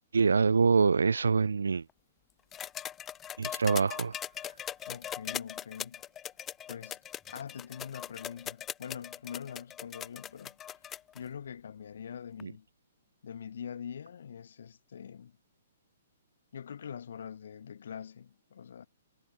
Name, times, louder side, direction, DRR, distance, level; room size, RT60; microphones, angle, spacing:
voice 1, 0.1-1.8 3.4-4.1 12.4-12.5, right 5 dB, 75° right, 0.9 m, -25 dB
sound 1, 2.5-11.2 12.4-12.5, left 10 dB, 20° left, 1.6 m, -40 dB
voice 2, 4.9-6.1 6.7-7.0 7.3-10.6 11.1-12.7 13.2-15.4 16.5-18.9, left 8 dB, 65° left, 7.5 m, -43 dB
figure-of-eight pair, 120°, 0 cm